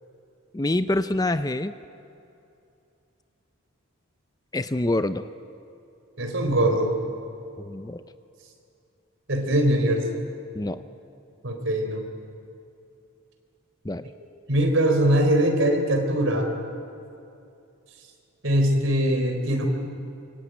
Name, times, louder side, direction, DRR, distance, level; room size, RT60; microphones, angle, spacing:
voice 1, 0.5-1.7 4.5-5.3 7.6-8.0 10.5-10.8 13.8-14.1, left 2 dB, 15° left, 11 dB, 0.5 m, -26 dB
voice 2, 6.2-7.0 9.3-10.0 11.4-12.1 14.5-16.5 18.4-19.7, right 1 dB, 65° right, 4 dB, 4.2 m, -22 dB
26.0 x 24.5 x 9.3 m, 2.7 s
head